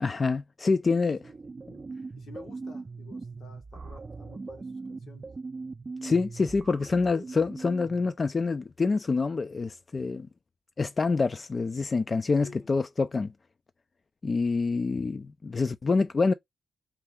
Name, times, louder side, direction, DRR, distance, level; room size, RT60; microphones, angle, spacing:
voice 1, 0.0-1.2 6.0-10.3 10.8-13.3 14.2-16.3, left 4 dB, 45° left, 0.3 m, -26 dB
voice 2, 0.9-1.2 2.2-5.3 12.4-12.7, left 4 dB, 75° left, 1.0 m, -50 dB
sound 1, 1.1-8.1, right 4 dB, 40° right, 0.4 m, -41 dB
4.4 x 2.4 x 3.5 m
supercardioid pair, 55°, 0 cm